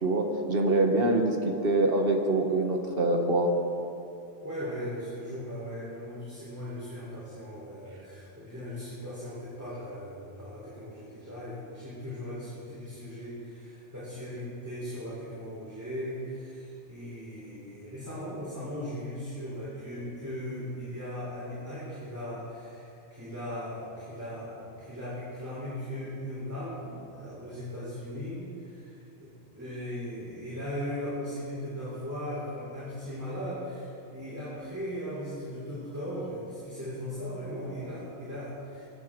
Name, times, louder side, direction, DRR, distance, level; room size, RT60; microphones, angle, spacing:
voice 1, 0.0-3.5, right 2 dB, 55° right, 3 dB, 1.6 m, -25 dB
voice 2, 4.4-28.9 29.2-38.8, equal, 15° right, -9 dB, 3.7 m, -38 dB
22.5 x 11.5 x 3.8 m, 2.7 s
omnidirectional pair, 1.2 m